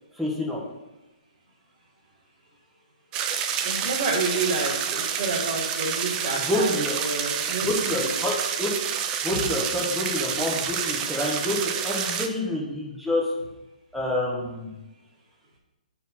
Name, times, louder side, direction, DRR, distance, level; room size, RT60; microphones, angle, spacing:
voice 1, 0.2-0.6 6.5-6.9 7.6-8.3 8.6-8.7 9.2-13.2 13.9-14.7, left 1 dB, ahead, -4 dB, 1.2 m, -27 dB
sound 1, 3.1-12.3, right 8 dB, 15° right, 0.4 m, -28 dB
voice 2, 3.6-7.7 8.0-8.1 9.3-9.4, right 3 dB, 35° right, -8 dB, 1.9 m, -29 dB
7.9 x 4.4 x 4.2 m, 1.0 s
hypercardioid pair, 160°, 4 cm